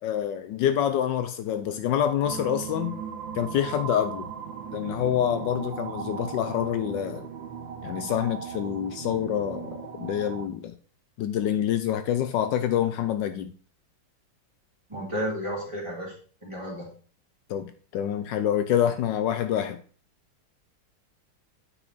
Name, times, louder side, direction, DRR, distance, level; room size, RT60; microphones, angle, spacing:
voice 1, 0.0-3.0 3.3-4.3 4.7-7.3 7.8-10.7 11.2-13.5 17.5-19.8, left 10 dB, 75° left, 9 dB, 1.2 m, -27 dB
sound 1, 2.2-10.5, right 7 dB, 90° right, 1.6 m, -37 dB
voice 2, 14.9-16.1 16.4-17.0, equal, 15° right, -4 dB, 2.4 m, -32 dB
9.0 x 4.7 x 4.0 m, 0.42 s
omnidirectional pair, 2.0 m